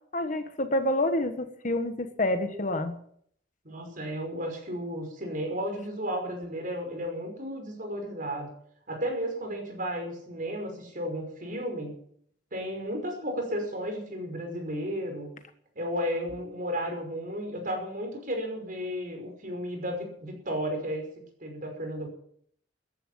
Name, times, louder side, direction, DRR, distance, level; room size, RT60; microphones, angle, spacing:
voice 1, 0.1-3.0, left 1 dB, 45° left, 8 dB, 1.4 m, -28 dB
voice 2, 3.6-8.5 8.9-11.9 12.5-15.3 15.8-21.1 21.4-22.1, equal, 50° right, 3 dB, 5.6 m, -33 dB
14.0 x 11.0 x 7.5 m, 0.65 s
head